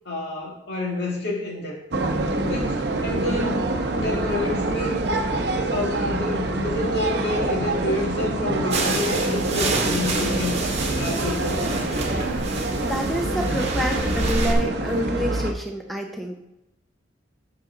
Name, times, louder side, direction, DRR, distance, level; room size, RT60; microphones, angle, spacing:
voice 1, 0.1-1.8 2.4-5.0 5.5-10.6 11.0-11.7, left 2 dB, 65° left, -2 dB, 1.9 m, -29 dB
sound 1, 1.9-15.5, right 2 dB, 65° right, 0.7 m, -25 dB
sound 2, 8.7-14.5, right 3 dB, 35° right, 1.2 m, -29 dB
voice 2, 12.8-16.4, equal, ahead, 2 dB, 0.6 m, -28 dB
7.5 x 5.9 x 3.8 m, 0.90 s
head